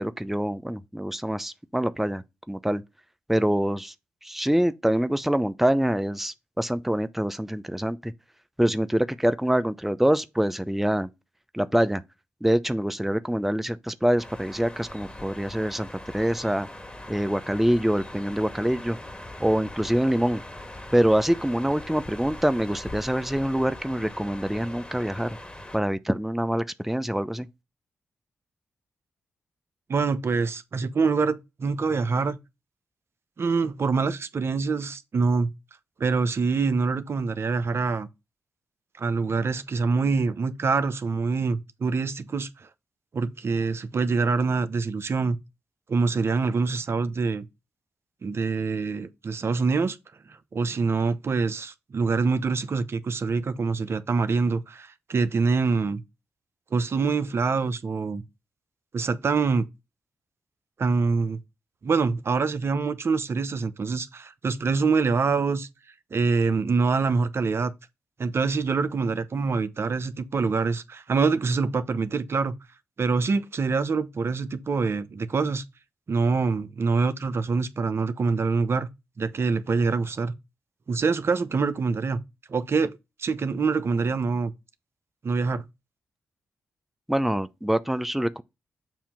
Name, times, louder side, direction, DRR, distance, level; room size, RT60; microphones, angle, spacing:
voice 1, 0.0-2.8 3.3-3.9 4.2-8.1 8.6-11.1 11.5-12.0 12.4-16.7 17.1-19.0 19.4-20.4 20.9-25.4 25.7-27.5 87.1-88.4, equal, 5° right, 0.6 m, -25 dB
sound 1, 14.2-25.8, left 1 dB, 20° left, 1.8 m, -41 dB
voice 2, 29.9-32.4 33.4-35.5 36.0-38.1 39.0-42.7 43.1-45.4 45.9-47.4 48.2-50.0 50.5-56.0 56.7-58.2 58.9-59.6 60.8-61.4 61.8-65.7 66.1-67.7 68.2-72.5 73.0-75.6 76.1-78.9 79.2-80.3 80.9-82.2 82.5-82.9 83.2-84.5 85.2-85.6, right 4 dB, 55° right, 0.8 m, -25 dB
7.4 x 2.8 x 5.6 m
supercardioid pair, 40°, 5 cm